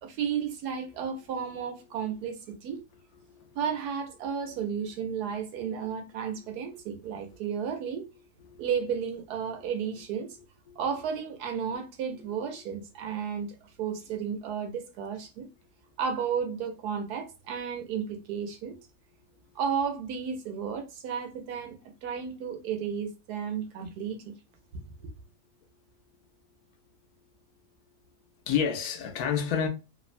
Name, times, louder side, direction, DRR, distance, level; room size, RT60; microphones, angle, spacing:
voice 1, 0.0-2.8 3.5-8.1 8.6-10.4 10.8-15.5 16.0-18.8 19.5-24.3 25.0-25.1, right 7 dB, 75° right, 1.1 m, -33 dB
voice 2, 28.5-29.7, left 7 dB, 75° left, 1.0 m, -29 dB
3.0 x 2.1 x 2.4 m
omnidirectional pair, 1.8 m